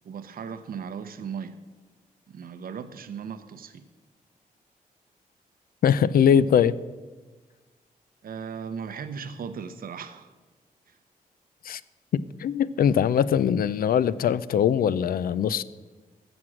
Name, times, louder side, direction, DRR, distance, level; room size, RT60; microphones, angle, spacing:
voice 1, 0.0-1.6 2.3-3.9 8.2-10.3 10.9-11.0, right 6 dB, 80° right, 10 dB, 0.7 m, -37 dB
voice 2, 5.8-6.7 11.6-11.8 12.1-15.6, left 8 dB, 85° left, 17 dB, 0.4 m, -22 dB
15.0 x 6.1 x 6.2 m, 1.3 s
wide cardioid pair, 105°, 15 cm